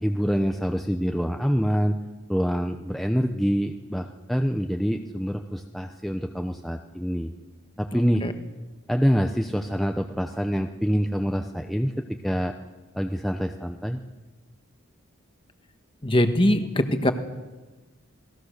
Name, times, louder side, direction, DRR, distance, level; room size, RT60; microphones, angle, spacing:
voice 1, 0.0-1.9 2.3-7.3 7.8-8.2 8.9-12.5 12.9-14.0, equal, ahead, 4 dB, 0.7 m, -26 dB
voice 2, 7.9-8.3 16.0-17.1, left 1 dB, 25° left, 8 dB, 1.5 m, -22 dB
28.5 x 20.0 x 6.7 m, 1.2 s
head